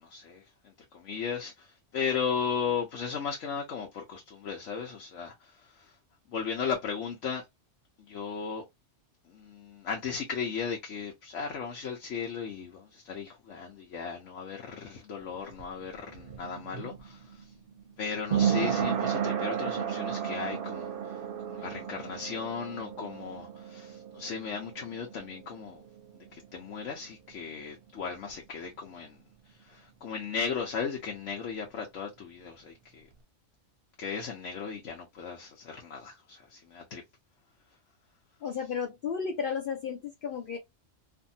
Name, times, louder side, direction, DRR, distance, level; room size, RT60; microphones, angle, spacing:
voice 1, 0.0-6.0 6.3-7.5 8.1-8.6 9.3-17.5 18.0-25.8 26.3-29.2 29.5-33.1 34.0-37.0, left 6 dB, 85° left, 1.1 m, -36 dB
sound 1, 15.2-26.7 27.0-27.1, right 8 dB, 60° right, 0.7 m, -33 dB
voice 2, 38.4-40.6, left 6 dB, 60° left, 0.6 m, -33 dB
2.6 x 2.5 x 2.6 m
omnidirectional pair, 1.2 m